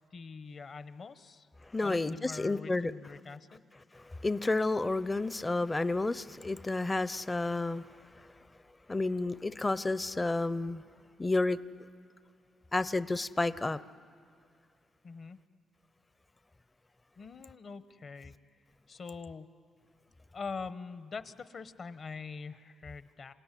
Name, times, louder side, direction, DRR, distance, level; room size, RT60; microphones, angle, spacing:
voice 1, 0.1-1.5 1.8-3.6 15.0-15.4 17.2-18.3 18.9-19.5 20.3-23.3, left 5 dB, 50° left, 13 dB, 1.0 m, -44 dB
voice 2, 1.6-2.9 3.9-7.9 8.9-10.8 11.2-11.6 12.7-13.8, left 2 dB, 20° left, 15 dB, 0.5 m, -31 dB
27.0 x 17.5 x 9.9 m, 2.3 s
cardioid pair, 95°, 0 cm